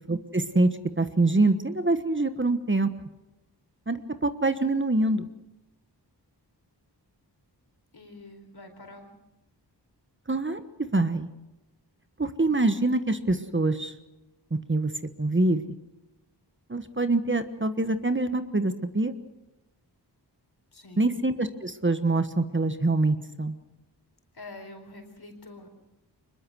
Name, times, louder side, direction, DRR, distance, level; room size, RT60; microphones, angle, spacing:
voice 1, 0.1-2.9 3.9-4.0 4.2-5.3 10.3-10.6 10.9-11.3 12.2-13.9 14.5-14.9 15.2-15.6 16.7-19.1 21.0-23.5, right 2 dB, 30° right, 10 dB, 1.3 m, -25 dB
voice 2, 7.9-9.1 20.7-21.2 24.3-25.7, left 2 dB, 65° left, 5 dB, 4.4 m, -46 dB
24.5 x 21.0 x 6.3 m, 0.99 s
wide cardioid pair, 60°, 42 cm